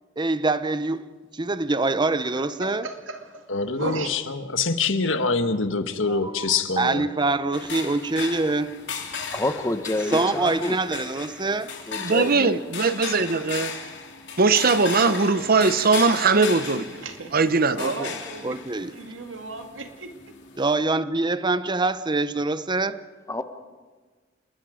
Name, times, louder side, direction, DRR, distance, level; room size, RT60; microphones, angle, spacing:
voice 1, 0.2-1.0 1.3-2.9 6.1-8.8 10.1-11.7 17.8-18.1 18.4-18.9 20.6-23.0, right 3 dB, 25° right, 0.8 m, -25 dB
voice 2, 2.2-3.5 3.8-4.1 17.0-17.4 17.7-18.6 18.9-20.1, right 3 dB, 85° right, 2.2 m, -34 dB
voice 3, 3.5-7.1, left 4 dB, 85° left, 1.5 m, -25 dB
sound 1, 7.5-20.7, left 6 dB, 65° left, 2.9 m, -36 dB
voice 4, 9.3-10.8 11.9-12.5 23.3-23.4, left 1 dB, 15° left, 1.2 m, -28 dB
voice 5, 12.0-13.7 14.4-16.9 17.3-17.8, right 4 dB, 50° right, 1.0 m, -20 dB
29.5 x 20.0 x 5.1 m
head